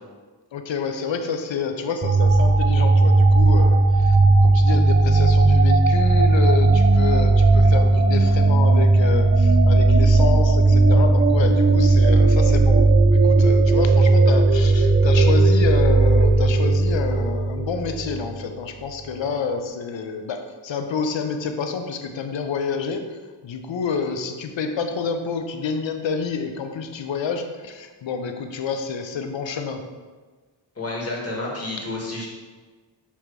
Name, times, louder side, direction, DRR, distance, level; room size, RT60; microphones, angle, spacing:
voice 1, 0.5-4.2 4.4-23.0 23.4-29.8, left 5 dB, 80° left, 6 dB, 0.7 m, -28 dB
sound 1, 2.0-18.4, right 3 dB, 25° right, 0.4 m, -16 dB
voice 2, 30.7-32.3, left 2 dB, 30° left, -3 dB, 1.5 m, -30 dB
7.1 x 2.9 x 4.7 m, 1.4 s
wide cardioid pair, 125°, 45 cm